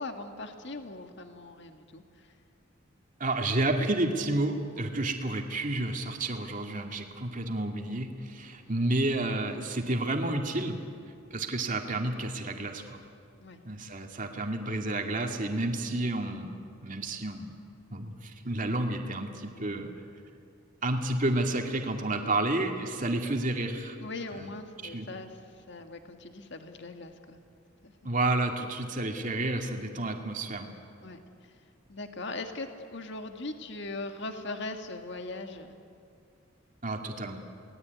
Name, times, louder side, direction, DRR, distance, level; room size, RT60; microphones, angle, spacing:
voice 1, 0.0-2.3 13.4-13.6 24.0-27.4 27.8-27.9 31.0-31.6 31.9-35.8, left 2 dB, 60° left, 5 dB, 1.8 m, -40 dB
voice 2, 3.2-10.8 11.3-13.0 13.6-17.5 17.9-19.9 20.8-24.0 24.4-24.5 24.9-25.1 28.0-30.7 36.8-37.4, right 2 dB, 40° right, 2 dB, 2.4 m, -30 dB
28.5 x 19.5 x 9.5 m, 2.4 s
head